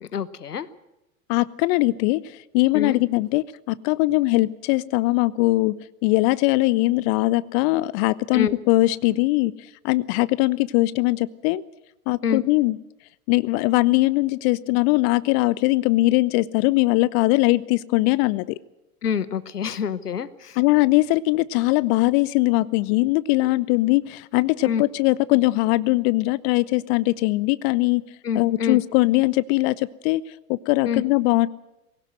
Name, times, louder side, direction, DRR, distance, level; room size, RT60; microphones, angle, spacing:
voice 1, 0.0-0.7 2.7-3.0 8.3-8.6 12.2-12.4 19.0-20.6 24.6-24.8 28.2-28.8 30.8-31.0, left 7 dB, 85° left, 17 dB, 1.1 m, -26 dB
voice 2, 1.3-2.2 2.5-5.8 6.0-9.5 9.8-11.6 12.1-12.8 13.3-18.6 20.6-28.0 28.3-30.2 30.5-31.5, left 20 dB, 45° left, 20 dB, 0.7 m, -21 dB
20.5 x 17.5 x 7.8 m, 0.93 s
figure-of-eight pair, 85°, 45 cm